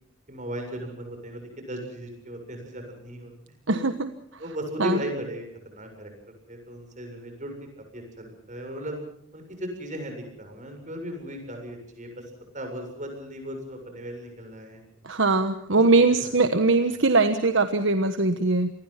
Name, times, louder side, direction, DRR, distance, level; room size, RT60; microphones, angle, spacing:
voice 1, 0.3-3.3 3.7-3.8 4.4-5.4 5.7-6.1 6.5-7.5 7.9-9.0 9.3-12.2 12.5-14.8 15.7-16.3, equal, 40° right, 4 dB, 7.4 m, -36 dB
voice 2, 3.7-4.1 4.8-5.0 15.0-18.7, right 3 dB, 65° right, 9 dB, 1.3 m, -21 dB
27.5 x 21.0 x 5.9 m, 0.67 s
head